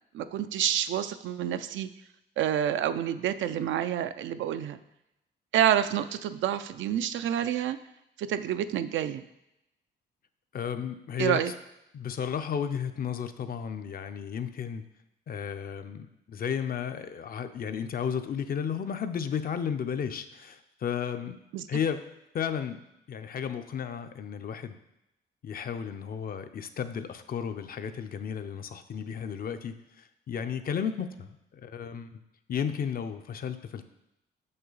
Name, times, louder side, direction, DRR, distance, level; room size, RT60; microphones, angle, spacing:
voice 1, 0.1-1.9 2.4-4.8 5.5-7.8 8.2-9.2 11.2-11.5 21.5-21.6, right 10 dB, 75° right, 11 dB, 0.4 m, -28 dB
voice 2, 10.5-11.4 11.9-14.8 15.3-21.4 21.7-22.0 22.3-22.8 23.1-24.8 25.4-32.2 32.5-33.9, left 7 dB, 50° left, 9 dB, 0.5 m, -33 dB
6.1 x 5.5 x 3.9 m, 0.87 s
cardioid pair, 90°, 20 cm